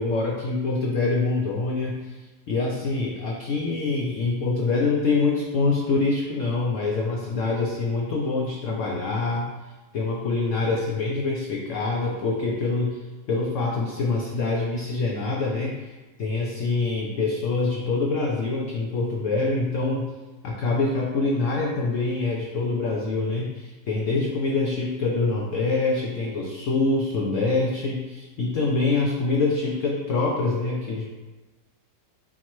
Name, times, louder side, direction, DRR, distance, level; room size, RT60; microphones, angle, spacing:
voice 1, 0.0-9.5 9.9-13.0 13.3-15.9 16.2-20.1 20.4-31.1, left 3 dB, 85° left, -1 dB, 0.6 m, -25 dB
4.2 x 4.0 x 3.0 m, 1.2 s
omnidirectional pair, 1.9 m